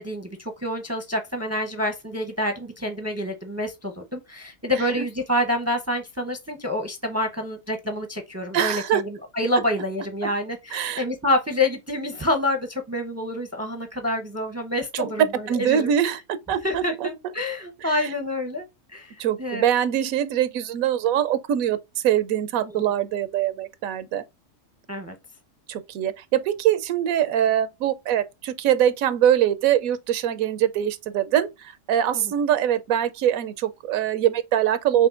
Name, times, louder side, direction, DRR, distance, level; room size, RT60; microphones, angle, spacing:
voice 1, 0.0-15.9 16.6-18.7 18.9-19.7 22.6-22.9 24.9-25.1 32.1-32.2, left 1 dB, 20° right, 0.4 m, -27 dB
voice 2, 8.5-9.0 10.7-11.0 14.9-15.1 15.5-17.1 17.8-17.9 19.2-21.8 22.0-24.2 25.7-35.1, right 10 dB, 85° right, 1.0 m, -23 dB
5.9 x 2.7 x 2.4 m
omnidirectional pair, 1.4 m